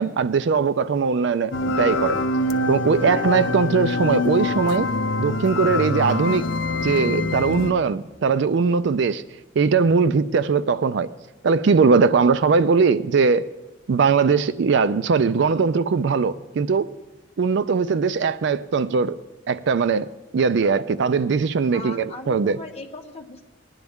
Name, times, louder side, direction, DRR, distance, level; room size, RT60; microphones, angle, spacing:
voice 1, 0.0-2.2 2.7-4.9 5.2-6.5 6.8-9.2 9.6-11.1 11.4-13.5 13.9-16.9 17.4-19.2 19.5-20.1 20.3-22.6, right 5 dB, 60° right, 14 dB, 0.4 m, -20 dB
sound 1, 1.5-7.7, left 2 dB, 65° left, 0.6 m, -24 dB
voice 2, 21.7-23.4, left 3 dB, 30° left, 3 dB, 1.0 m, -38 dB
20.0 x 10.5 x 3.5 m, 1.1 s
head